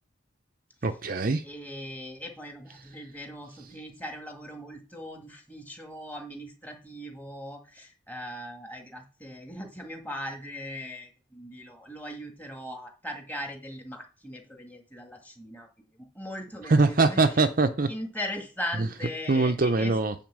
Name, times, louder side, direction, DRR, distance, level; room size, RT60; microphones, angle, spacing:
voice 1, 0.8-1.4 16.7-17.9 18.8-18.9 19.3-20.1, right 3 dB, 45° right, 0.6 m, -23 dB
voice 2, 1.4-15.7 16.0-17.2 17.9-20.0, equal, 10° left, 1.9 m, -39 dB
9.3 x 4.4 x 7.5 m
head